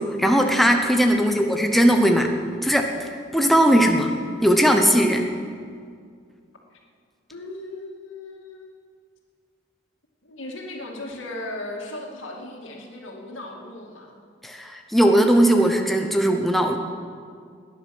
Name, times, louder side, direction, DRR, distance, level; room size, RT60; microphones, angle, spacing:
voice 1, 0.0-2.3 2.6-4.1 4.4-5.3 14.4-16.8, equal, ahead, 3 dB, 0.9 m, -19 dB
voice 2, 1.2-1.5 6.7-6.8 7.3-8.7 10.2-14.2, left 1 dB, 85° left, 0 dB, 2.4 m, -37 dB
17.5 x 10.5 x 6.1 m, 2.1 s
head